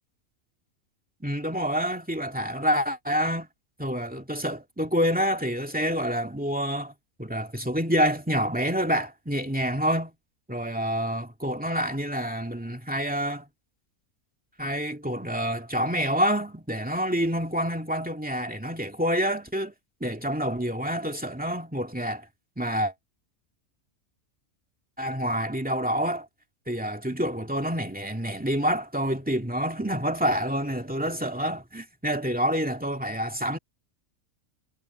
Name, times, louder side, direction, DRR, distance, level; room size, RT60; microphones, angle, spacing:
voice 1, 1.2-3.5 3.8-6.9 7.2-10.1 10.5-13.4 14.6-19.7 20.0-22.3 22.6-22.9 25.0-26.3 26.7-33.6, equal, 5° right, 2.2 m, -27 dB
omnidirectional pair, 1.5 m